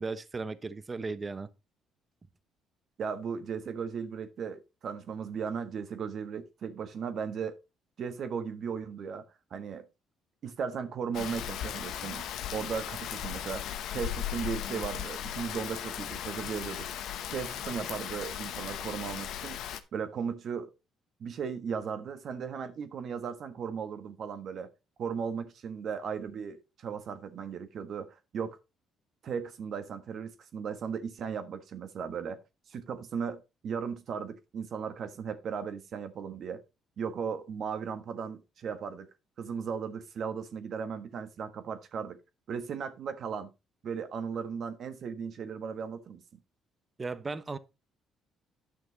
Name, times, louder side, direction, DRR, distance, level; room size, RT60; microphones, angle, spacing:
voice 1, 0.0-1.5 47.0-47.6, right 4 dB, 30° right, 1.0 m, -36 dB
voice 2, 3.0-7.6 8.0-9.2 9.5-9.9 10.4-12.3 12.5-16.9 17.3-19.7 19.9-20.7 21.2-24.7 25.0-28.6 29.2-32.4 32.7-36.6 37.0-39.1 39.4-42.2 42.5-43.5 43.8-46.2, right 6 dB, 60° right, 1.5 m, -36 dB
Rain, 11.1-19.8, left 10 dB, 70° left, 0.9 m, -37 dB
10.0 x 6.1 x 4.1 m
supercardioid pair, 60°, 0 cm